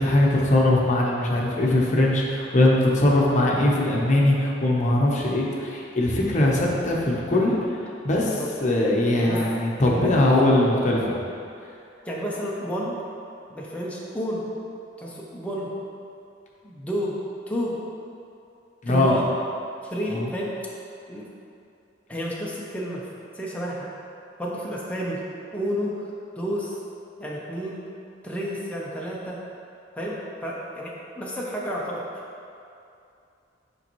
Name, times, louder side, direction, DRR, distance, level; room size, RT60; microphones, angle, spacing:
voice 1, 0.0-7.5 8.0-11.1 18.8-19.2 20.1-20.2, left 1 dB, 40° left, -4 dB, 0.9 m, -21 dB
voice 2, 8.2-8.5 9.2-9.5 9.9-10.4 12.0-13.0 13.5-14.4 15.0-15.7 16.6-17.2 17.5-17.8 18.9-19.3 19.8-20.6 21.1-21.3 22.1-23.1 23.3-23.9 24.4-25.2 25.5-26.1 26.4-26.8 27.2-27.8 28.2-29.4 30.0-32.0, equal, 5° left, -5 dB, 0.7 m, -30 dB
6.7 x 5.3 x 3.1 m, 2.6 s
head